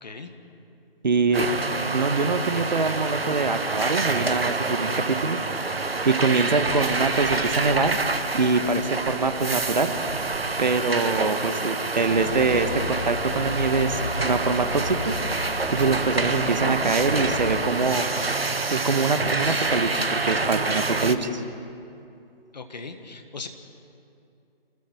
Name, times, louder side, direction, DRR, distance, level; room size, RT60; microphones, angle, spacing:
voice 1, 0.0-0.3 22.5-23.5, left 4 dB, 45° left, 6 dB, 1.7 m, -38 dB
voice 2, 1.0-1.5 1.9-5.4 6.0-8.0 8.3-9.9 10.6-15.1 15.7-18.0 18.7-21.4, right 4 dB, 45° right, 9 dB, 1.4 m, -24 dB
sound 1, 1.3-21.2, right 3 dB, 75° right, 1.4 m, -27 dB
sound 2, 12.0-18.6, left 2 dB, 30° left, 3.3 m, -34 dB
27.5 x 20.5 x 4.6 m, 2.6 s
figure-of-eight pair, 150°, 30 cm